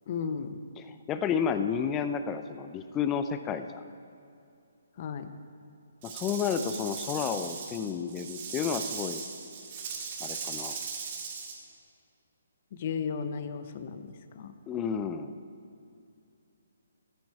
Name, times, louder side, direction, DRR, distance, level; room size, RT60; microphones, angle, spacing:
voice 1, 0.1-0.6 5.0-5.3 12.7-14.5, left 6 dB, 45° left, 9 dB, 0.9 m, -35 dB
voice 2, 0.8-3.8 6.0-9.2 10.2-10.8 14.7-15.4, left 7 dB, 20° left, 9 dB, 0.6 m, -31 dB
Rattle / Rattle (instrument), 6.0-11.6, right 5 dB, 40° right, 1.9 m, -38 dB
15.0 x 9.7 x 4.8 m, 2.6 s
figure-of-eight pair, 140°, 0 cm